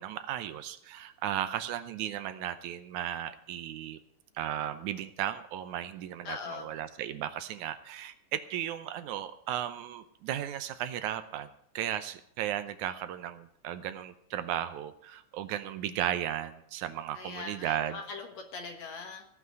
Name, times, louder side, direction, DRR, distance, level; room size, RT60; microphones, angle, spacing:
voice 1, 0.0-4.0 4.4-18.0, right 11 dB, 80° right, 11 dB, 2.1 m, -35 dB
voice 2, 6.2-6.7 17.1-19.3, left 4 dB, 65° left, 4 dB, 2.6 m, -41 dB
17.0 x 6.0 x 9.3 m, 0.67 s
omnidirectional pair, 3.5 m